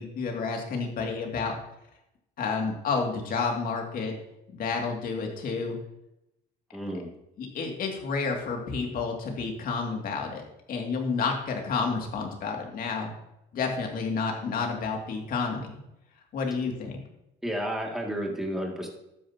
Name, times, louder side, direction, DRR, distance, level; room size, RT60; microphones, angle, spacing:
voice 1, 0.0-1.5 2.4-4.1 4.5-5.8 7.4-13.1 13.5-15.7 16.3-17.0, left 4 dB, 60° left, 1 dB, 2.5 m, -30 dB
voice 2, 6.7-7.1 17.4-18.9, equal, ahead, 0 dB, 2.4 m, -31 dB
12.0 x 9.2 x 2.9 m, 0.86 s
cardioid pair, 110°, 17 cm